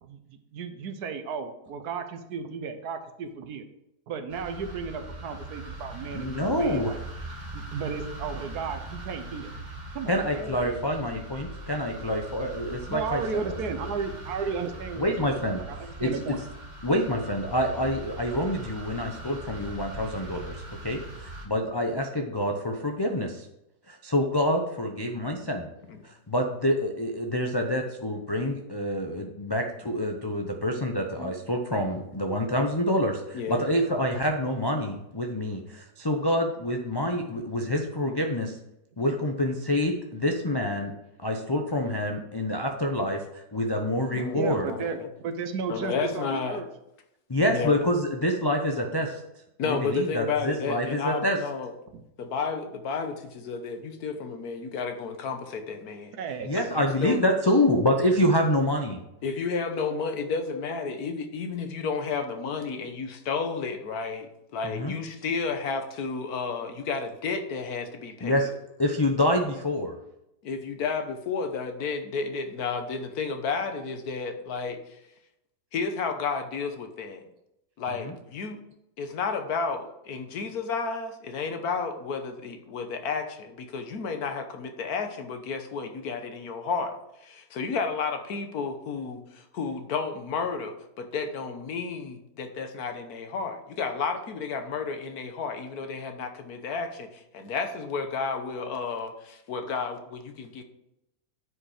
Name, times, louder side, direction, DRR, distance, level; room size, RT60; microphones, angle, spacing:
voice 1, 0.0-3.7 4.1-7.0 7.5-9.5 9.9-10.7 12.9-15.4 15.7-16.4 44.3-46.7 51.9-52.0 56.1-56.6, right 5 dB, 75° right, 8 dB, 1.3 m, -34 dB
sound 1, 4.3-21.5, right 2 dB, 30° right, 1.6 m, -41 dB
voice 2, 6.1-6.9 10.1-13.2 13.5-13.6 15.0-15.6 16.0-16.1 16.8-20.6 20.8-23.5 23.9-25.7 26.0-38.6 39.0-40.9 41.2-44.7 47.3-49.2 49.6-51.4 56.4-59.0 64.6-64.9 68.2-68.5 68.8-69.9 78.0-78.1, left 1 dB, 30° left, 1 dB, 0.4 m, -27 dB
voice 3, 33.3-33.7 44.1-45.1 45.7-46.6 47.5-47.9 49.6-51.7 52.2-56.1 56.6-57.2 59.2-68.5 70.4-74.8 75.7-77.2 77.8-78.6 79.0-100.6, left 5 dB, 65° left, 6 dB, 1.4 m, -32 dB
9.9 x 5.1 x 4.9 m, 0.85 s
omnidirectional pair, 1.7 m